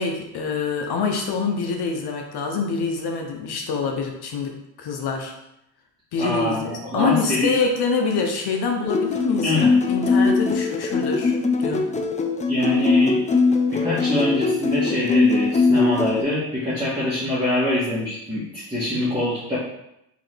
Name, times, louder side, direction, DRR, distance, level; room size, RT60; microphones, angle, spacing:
voice 1, 0.0-5.3 6.1-11.9, left 4 dB, 60° left, 3 dB, 0.8 m, -26 dB
voice 2, 6.2-7.5 9.4-9.7 12.5-13.1 13.7-19.6, left 1 dB, 10° right, -10 dB, 1.5 m, -24 dB
sound 1, 8.8-16.2, left 4 dB, 15° left, 0.3 m, -21 dB
3.7 x 2.9 x 3.3 m, 0.82 s
supercardioid pair, 70°, 45 cm